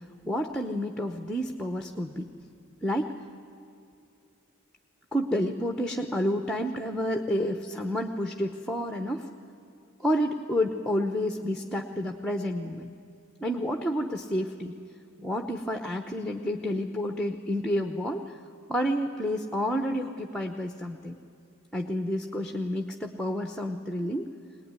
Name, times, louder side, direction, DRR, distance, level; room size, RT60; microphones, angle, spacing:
voice 1, 0.2-2.3 2.8-3.2 5.1-9.3 10.0-12.9 13.4-14.8 15.2-18.2 18.7-21.2 21.7-24.3, equal, 5° left, 5 dB, 0.8 m, -29 dB
22.5 x 19.5 x 9.7 m, 2.5 s
head